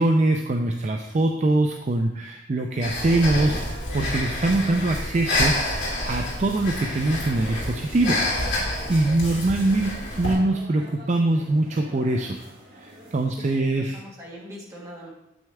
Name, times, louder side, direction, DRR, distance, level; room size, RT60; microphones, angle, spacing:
voice 1, 0.0-5.5 6.1-8.5 8.9-12.4 12.7-13.9, right 2 dB, 35° right, 3 dB, 0.4 m, -23 dB
Breathing, 2.8-10.3, left 1 dB, 60° left, 3.0 m, -28 dB
sound 1, 2.8-13.3, right 1 dB, 55° right, 2.1 m, -46 dB
voice 2, 13.4-15.1, equal, 15° right, -4 dB, 1.7 m, -42 dB
7.6 x 6.3 x 3.5 m, 0.89 s
head